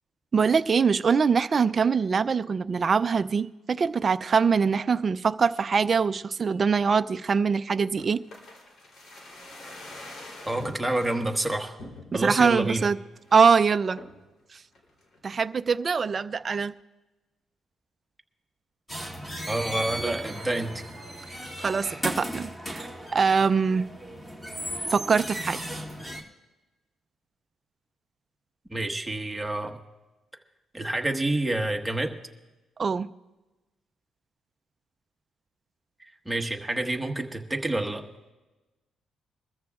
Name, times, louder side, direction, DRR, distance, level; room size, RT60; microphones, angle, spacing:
voice 1, 0.3-8.2 12.1-13.0 13.3-14.0 15.2-16.7 21.6-23.9 24.9-25.6 32.8-33.1, right 5 dB, 40° right, 11 dB, 0.4 m, -23 dB
sound 1, 8.0-11.2 11.8-12.4 12.8-12.9 13.2-13.5 14.0-14.3 14.8-15.5 15.7-15.8, left 2 dB, 55° left, 3.2 m, -45 dB
voice 2, 10.4-11.8 12.1-12.9 19.5-20.8 28.7-29.8 30.7-32.1 36.2-38.0, right 2 dB, 10° right, 3 dB, 1.4 m, -28 dB
sound 2, 18.9-26.2, equal, 15° left, 2.3 m, -36 dB
23.0 x 14.0 x 2.4 m, 1.1 s
cardioid pair, 90°, 0 cm